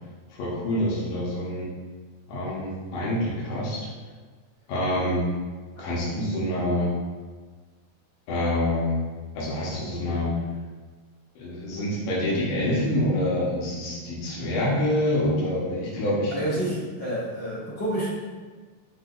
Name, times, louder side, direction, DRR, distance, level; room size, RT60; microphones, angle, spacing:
voice 1, 0.3-1.7 2.3-3.9 4.7-5.3 5.8-6.9 8.3-9.0 9.4-10.3 11.4-16.3, left 1 dB, 85° left, -7 dB, 3.0 m, -26 dB
voice 2, 16.3-18.1, right 1 dB, 40° left, -9 dB, 2.1 m, -29 dB
9.9 x 3.8 x 2.5 m, 1.4 s
omnidirectional pair, 4.0 m